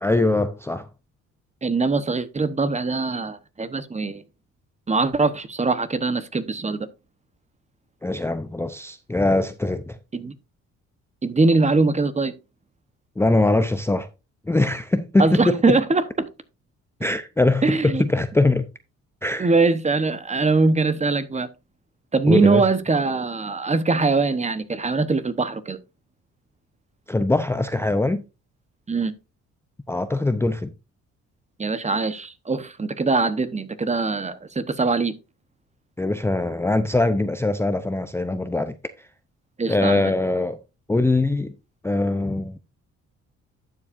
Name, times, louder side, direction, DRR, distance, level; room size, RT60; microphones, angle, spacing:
voice 1, 0.0-0.9 8.0-10.0 13.2-14.1 14.5-15.8 17.0-18.7 19.2-19.5 22.3-22.6 27.1-28.2 29.9-30.7 36.0-39.1 39.7-40.6 40.9-41.5 41.8-42.6, left 2 dB, 10° left, 0.6 m, -22 dB
voice 2, 1.6-4.2 4.9-6.9 10.1-10.3 11.2-12.3 15.2-16.3 17.6-18.0 19.4-21.5 22.1-25.8 28.9-29.1 31.6-35.1 39.6-40.1, right 3 dB, 25° right, 1.0 m, -22 dB
11.5 x 7.4 x 2.6 m
cardioid pair, 90°, 30 cm